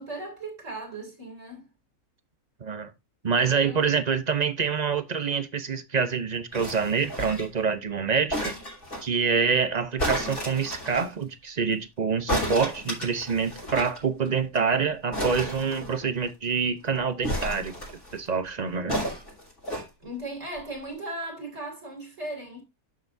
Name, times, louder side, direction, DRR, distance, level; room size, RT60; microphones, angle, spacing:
voice 1, 0.0-1.7 3.4-3.9 20.0-22.6, right 1 dB, 55° right, 3.4 m, -37 dB
voice 2, 3.2-8.5 9.0-17.7 18.1-19.0, right 5 dB, 35° right, 0.7 m, -26 dB
sound 1, 6.5-7.6 8.3-9.1 10.0-11.1 12.3-14.0 14.3-14.4 14.6-14.7 15.1-16.3 17.2-18.2 18.9-19.9 20.6-20.7, equal, 75° left, 5.4 m, -32 dB
12.0 x 6.7 x 2.7 m
omnidirectional pair, 1.6 m